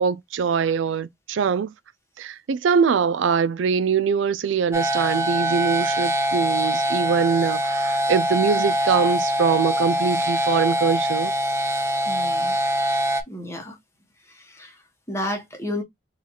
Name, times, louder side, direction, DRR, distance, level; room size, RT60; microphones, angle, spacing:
voice 1, 0.0-1.7 2.2-11.3, right 6 dB, 85° right, 0.4 m, -23 dB
sound 1, 4.7-13.2, equal, 15° right, 0.4 m, -23 dB
voice 2, 12.0-12.6 13.3-13.8 14.2-15.8, left 1 dB, 15° left, 0.9 m, -32 dB
3.9 x 2.4 x 2.9 m
head